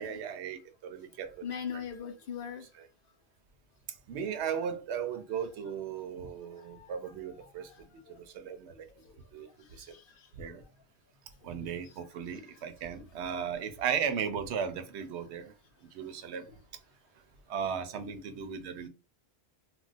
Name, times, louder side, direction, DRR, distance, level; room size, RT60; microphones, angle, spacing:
voice 1, 0.0-1.4 4.1-7.7 8.3-8.9 9.3-9.5 9.8-9.9 10.4-10.6 11.4-15.5 15.9-16.5 17.5-18.9, right 7 dB, 85° right, 0.9 m, -36 dB
voice 2, 1.4-2.7 4.3-4.7 5.1-5.2 6.5-7.0 7.4-8.2 9.7-10.6 11.8-11.9 12.3-12.4 16.5-16.6, left 7 dB, 65° left, 0.7 m, -43 dB
2.4 x 2.1 x 3.9 m
omnidirectional pair, 1.1 m